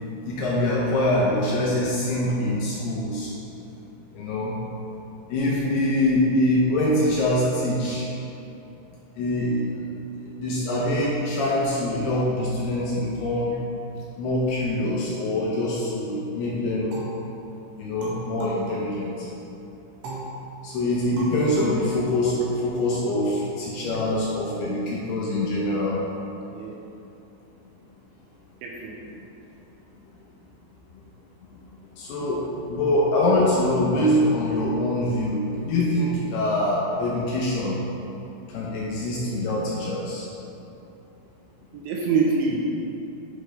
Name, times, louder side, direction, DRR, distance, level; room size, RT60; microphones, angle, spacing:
voice 1, 0.3-3.3 4.1-4.5 5.3-8.1 9.2-9.6 10.4-13.5 14.2-17.0 17.8-19.3 20.6-26.0 32.0-37.8 38.5-40.3, left 1 dB, 75° left, -5 dB, 2.4 m, -24 dB
sound 1, 16.9-19.4 20.0-22.8, right 2 dB, 65° right, 3.1 m, -40 dB
voice 2, 28.6-29.0 41.7-42.6, right 4 dB, 80° right, -2 dB, 2.9 m, -25 dB
10.5 x 6.3 x 3.4 m, 3.0 s
omnidirectional pair, 5.6 m